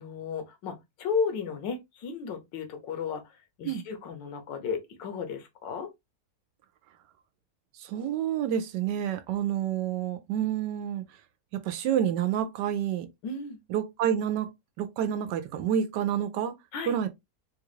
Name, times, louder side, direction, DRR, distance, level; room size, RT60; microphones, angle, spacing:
voice 1, 0.0-5.9 13.2-13.6 16.7-17.0, left 5 dB, 80° left, 1.5 m, -34 dB
voice 2, 7.8-11.0 11.6-13.1 13.7-14.5 14.8-16.6 16.9-17.1, right 9 dB, 75° right, 1.1 m, -28 dB
3.8 x 2.3 x 3.0 m
omnidirectional pair, 2.0 m